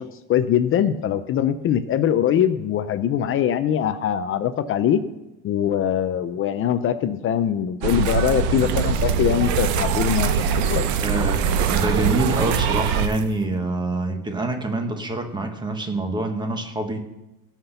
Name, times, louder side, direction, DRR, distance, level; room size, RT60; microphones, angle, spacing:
voice 1, 0.0-5.0 5.4-10.9, left 9 dB, 30° left, 10 dB, 0.5 m, -22 dB
sound 1, 7.8-13.4, right 10 dB, 40° right, 0.7 m, -32 dB
sound 2, 7.8-13.1, right 6 dB, 65° right, 1.1 m, -23 dB
voice 2, 11.0-17.0, right 2 dB, 10° right, 5 dB, 1.2 m, -26 dB
17.5 x 5.9 x 6.8 m, 0.99 s
cardioid pair, 155°, 44 cm